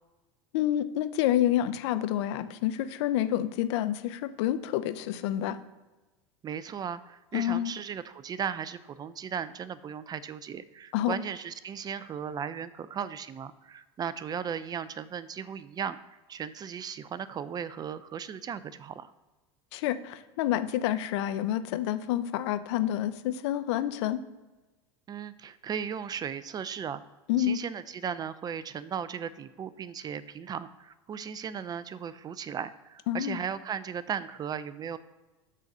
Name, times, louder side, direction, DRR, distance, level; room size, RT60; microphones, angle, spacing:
voice 1, 0.5-5.6 7.3-7.7 10.9-11.1 19.7-24.2 27.3-27.6 33.1-33.4, left 12 dB, 70° left, 11 dB, 0.7 m, -28 dB
voice 2, 6.4-16.0 16.3-19.1 25.1-27.0 27.4-35.0, right 7 dB, 25° right, 15 dB, 0.4 m, -36 dB
7.4 x 4.0 x 6.7 m, 1.2 s
supercardioid pair, 110°, 15 cm